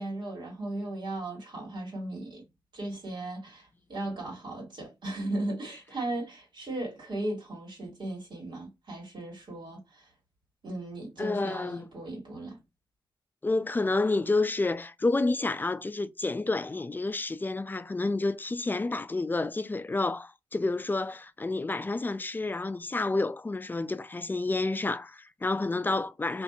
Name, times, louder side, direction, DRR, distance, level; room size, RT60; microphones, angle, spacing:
voice 1, 0.0-2.4 2.7-10.1 10.6-12.6, right 2 dB, 65° right, 1.7 m, -36 dB
voice 2, 11.2-11.9 13.4-26.4, left 3 dB, 25° left, 0.3 m, -29 dB
2.6 x 2.6 x 2.2 m
cardioid pair, 60°, 8 cm